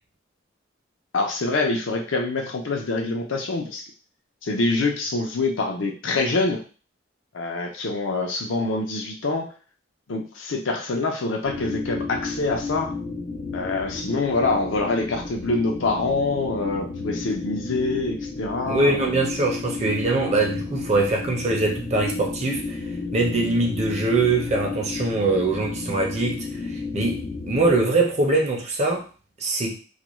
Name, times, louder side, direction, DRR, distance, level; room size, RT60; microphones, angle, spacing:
voice 1, 1.1-3.8 4.4-6.6 7.3-9.5 10.1-12.9 13.5-19.1, left 3 dB, 75° left, 2 dB, 0.6 m, -25 dB
sound 1, 11.4-27.8, left 4 dB, 30° left, 0.4 m, -32 dB
voice 2, 18.7-22.8 23.1-26.5 26.9-29.0 29.4-29.7, right 2 dB, 35° right, 0 dB, 0.6 m, -22 dB
2.4 x 2.2 x 3.0 m, 0.36 s
head